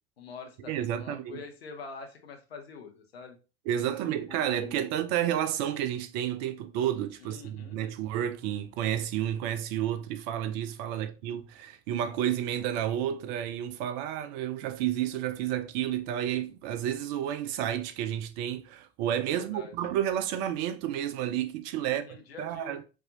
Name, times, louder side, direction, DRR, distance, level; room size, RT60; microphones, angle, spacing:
voice 1, 0.2-3.4 4.0-5.0 7.2-7.8 10.9-11.1 19.3-19.7 21.8-22.8, left 4 dB, 70° left, 0.9 m, -46 dB
voice 2, 0.7-1.4 3.7-22.1 22.4-22.8, right 11 dB, 45° right, 0.5 m, -31 dB
4.7 x 2.7 x 2.7 m
figure-of-eight pair, 75°, 31 cm